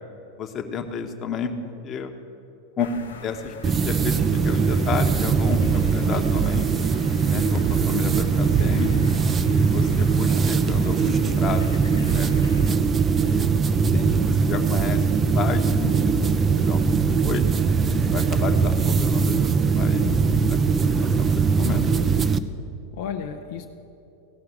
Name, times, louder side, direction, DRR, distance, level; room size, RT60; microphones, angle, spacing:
voice 1, 0.4-2.1 2.8-2.9 3.2-6.7 7.3-8.9 9.5-12.4 13.1-13.5 13.9-15.0 15.3-17.5 18.1-20.0 20.8-21.9, left 6 dB, 35° left, 5 dB, 1.1 m, -32 dB
sound 1, 2.8-12.8, left 4 dB, 80° left, 1.0 m, -43 dB
sound 2, 3.6-22.4, right 5 dB, 30° right, 0.5 m, -21 dB
voice 2, 19.9-20.7 22.9-23.6, left 8 dB, 65° left, 3 dB, 0.6 m, -34 dB
16.5 x 5.8 x 8.0 m, 2.8 s
hypercardioid pair, 90°, 0 cm